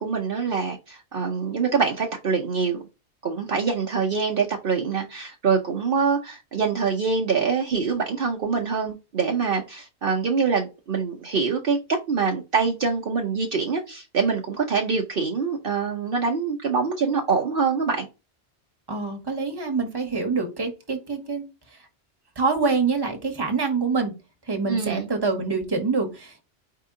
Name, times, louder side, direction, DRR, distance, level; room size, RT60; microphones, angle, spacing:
voice 1, 0.0-2.8 3.2-18.1 24.7-25.1, right 5 dB, 55° right, 0.9 m, -25 dB
voice 2, 18.9-21.4 22.4-24.1 24.5-26.4, right 4 dB, 20° right, 1.1 m, -25 dB
4.8 x 2.8 x 3.6 m
omnidirectional pair, 1.2 m